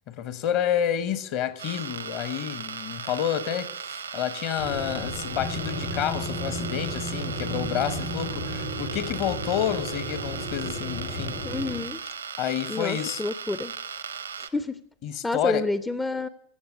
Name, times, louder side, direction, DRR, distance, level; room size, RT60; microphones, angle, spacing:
voice 1, 0.1-11.4 12.4-13.2 15.0-15.6, left 10 dB, 40° left, 1.0 m, -29 dB
sound 1, 1.6-14.5, right 6 dB, 75° right, 0.8 m, -37 dB
sound 2, 4.6-11.8, equal, 80° left, 4.9 m, -33 dB
voice 2, 11.4-12.0 12.7-13.7 14.4-14.8 15.2-16.3, left 2 dB, 10° left, 0.5 m, -29 dB
16.0 x 7.0 x 8.5 m
figure-of-eight pair, 90°, 0 cm